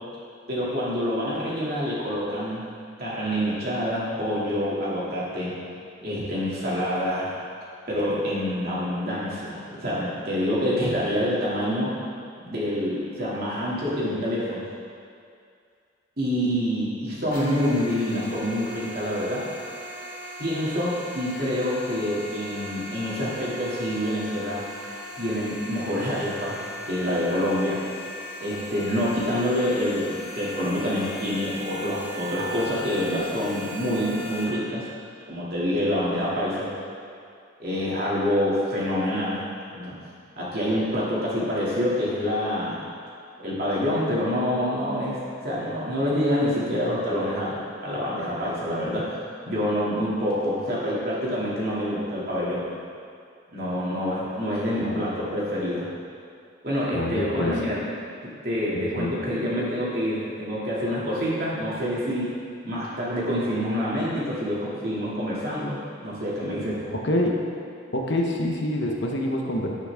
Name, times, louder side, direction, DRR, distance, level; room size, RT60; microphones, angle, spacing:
voice 1, 0.5-2.6 3.0-5.5 6.0-7.4 7.9-11.9 12.4-14.6 16.2-19.4 20.4-24.6 25.2-26.6 26.9-27.8 28.4-34.8 35.3-36.8 37.6-39.4 39.7-39.9 40.4-42.8 43.4-49.2 49.4-52.7 53.5-55.9 56.6-57.9 58.4-62.3 62.6-66.9, equal, 50° right, -8 dB, 2.5 m, -27 dB
sound 1, 17.3-34.4, equal, 90° left, 1.9 m, -38 dB
voice 2, 56.9-57.6 58.7-59.1 66.9-67.4 67.9-69.7, left 1 dB, 65° left, 0 dB, 1.1 m, -26 dB
10.0 x 8.7 x 3.6 m, 2.3 s
head